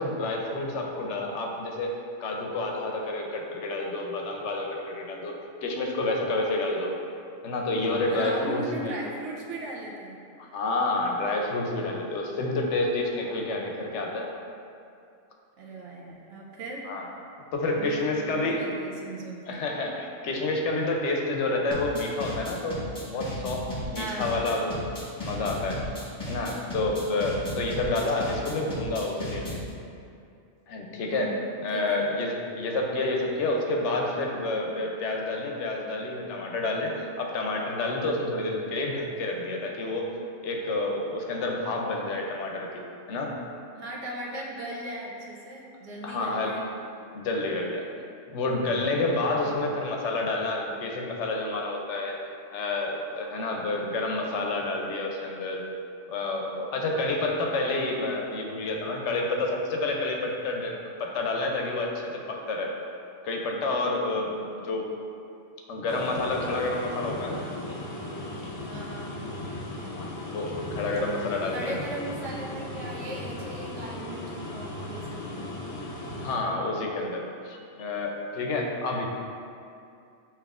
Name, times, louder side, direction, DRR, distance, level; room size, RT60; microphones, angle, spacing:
voice 1, 0.0-5.3 5.6-7.0 7.4-8.9 10.4-14.3 16.9-17.1 17.5-18.7 19.5-24.7 25.2-25.8 26.3-29.6 30.7-40.1 40.4-43.4 46.0-46.6 47.1-47.9 48.3-52.2 52.5-55.6 56.1-62.7 63.2-64.9 65.7-67.4 69.9-71.8 76.2-79.1, left 2 dB, 70° left, 0 dB, 0.9 m, -29 dB
voice 2, 8.1-10.2 15.6-16.9 17.8-19.6 23.9-24.3 27.5-27.6 31.1-31.4 31.7-32.0 43.7-46.7 49.4-49.7 68.7-69.3 71.5-75.6, right 2 dB, 75° right, -3 dB, 1.0 m, -38 dB
sound 1, 21.7-29.7, left 1 dB, 20° left, 1.0 m, -35 dB
sound 2, 65.9-76.4, left 2 dB, 50° left, 0.4 m, -37 dB
6.9 x 2.9 x 2.4 m, 2.5 s
omnidirectional pair, 1.3 m